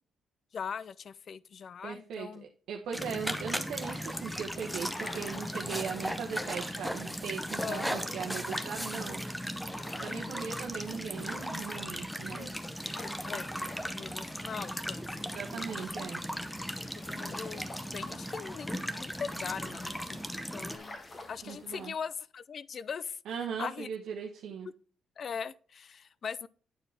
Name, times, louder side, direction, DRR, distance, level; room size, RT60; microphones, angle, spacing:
voice 1, 0.5-2.5 3.0-3.2 7.6-7.9 10.0-10.3 12.4-12.5 13.2-13.5 13.9-15.8 17.0-21.0 21.3-23.2 23.6-23.9 25.2-26.5, left 6 dB, 50° left, 0.4 m, -41 dB
voice 2, 1.8-2.3 2.7-9.2 10.0-12.5 15.3-16.2 21.4-21.9 23.3-24.7, right 7 dB, 80° right, 1.0 m, -39 dB
sound 1, 2.9-20.8, equal, 5° left, 0.8 m, -37 dB
sound 2, 3.8-21.9, left 2 dB, 30° left, 1.4 m, -50 dB
9.0 x 4.6 x 3.4 m
cardioid pair, 90°, 0 cm